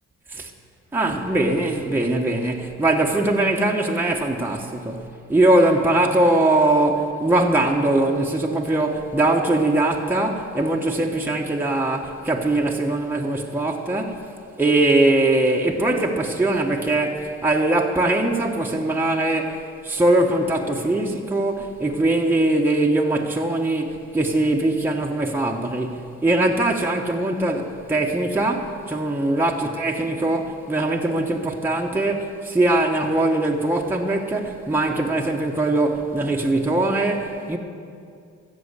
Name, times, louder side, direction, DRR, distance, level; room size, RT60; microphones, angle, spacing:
voice 1, 0.9-14.2 14.6-37.6, right 2 dB, 5° right, 1.1 m, -21 dB
14.0 x 7.0 x 8.2 m
cardioid pair, 90°, 30 cm